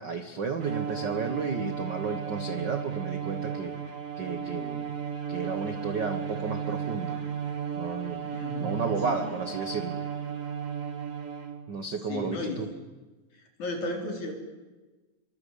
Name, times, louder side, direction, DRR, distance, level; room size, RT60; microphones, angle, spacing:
voice 1, 0.0-3.7 4.2-4.9 5.3-7.2 7.8-8.3 8.6-10.0 11.7-12.7, right 4 dB, 65° right, 8 dB, 1.0 m, -33 dB
Bowed string instrument, 0.6-11.8, right 7 dB, 35° right, 1.3 m, -34 dB
voice 2, 8.3-9.2 12.1-12.7 13.6-14.3, left 2 dB, 55° left, 2 dB, 5.5 m, -34 dB
28.5 x 23.5 x 8.4 m, 1.2 s
omnidirectional pair, 4.0 m